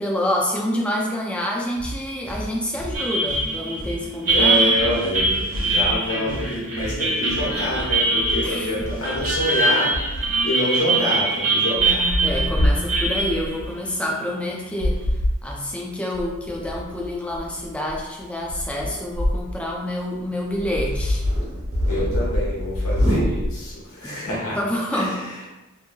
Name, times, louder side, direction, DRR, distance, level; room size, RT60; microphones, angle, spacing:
voice 1, 0.0-4.7 8.4-8.7 10.3-10.4 12.2-15.0 15.4-21.2 24.0-24.3 24.5-25.2, left 1 dB, 5° left, -2 dB, 0.4 m, -27 dB
sound 1, 1.8-9.8, right 1 dB, 40° left, 0.7 m, -34 dB
sound 2, 2.9-14.7, right 2 dB, 40° right, 0.8 m, -23 dB
voice 2, 4.3-12.1 21.9-24.6 24.9-25.5, left 1 dB, 80° left, -6 dB, 1.1 m, -27 dB
sound 3, 5.5-6.1 7.3-9.3 9.9-10.5 11.2-11.3 11.7-13.7 14.8-15.4 16.1-19.6 20.0-20.1 20.5-23.7, equal, 70° right, 1.2 m, -25 dB
2.9 x 2.6 x 2.2 m, 1.0 s
head